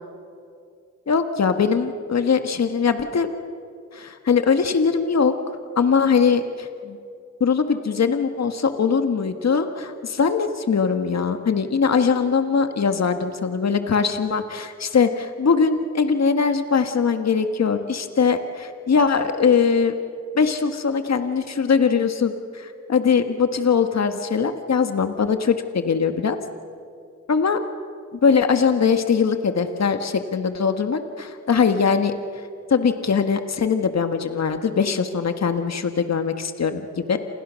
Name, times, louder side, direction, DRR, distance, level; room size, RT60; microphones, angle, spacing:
voice 1, 1.1-3.3 3.9-5.3 5.8-7.0 7.4-19.9 20.3-26.4 27.3-27.6 28.2-32.1 32.7-37.2, left 5 dB, 60° left, 7 dB, 1.6 m, -21 dB
29.5 x 27.5 x 6.4 m, 2.4 s
cardioid pair, 60°, 30 cm